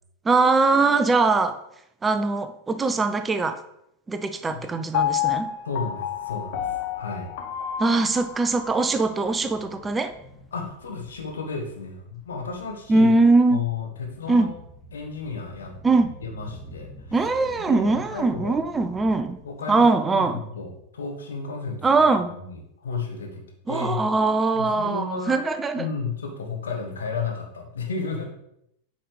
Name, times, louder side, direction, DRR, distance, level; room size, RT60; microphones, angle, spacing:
voice 1, 0.2-1.6 2.0-3.6 4.1-5.5 7.8-10.1 12.9-13.6 14.3-14.5 15.8-16.1 17.1-19.4 19.7-20.4 21.8-22.3 23.7-25.9, right 3 dB, 15° right, 9 dB, 0.4 m, -21 dB
Piano, 4.9-9.0 9.5-9.6, left 10 dB, 50° left, 0.8 m, -29 dB
voice 2, 5.6-7.3 10.5-13.1 13.5-14.5 14.9-15.7 16.2-17.2 17.6-18.6 19.4-21.8 22.4-23.4 23.7-24.1 24.5-25.4 25.8-28.3, left 4 dB, 65° left, 2 dB, 1.3 m, -33 dB
sound 1, 6.1-19.4, left 1 dB, 10° left, 1.8 m, -48 dB
8.5 x 5.2 x 3.2 m, 0.78 s
figure-of-eight pair, 90°, 0 cm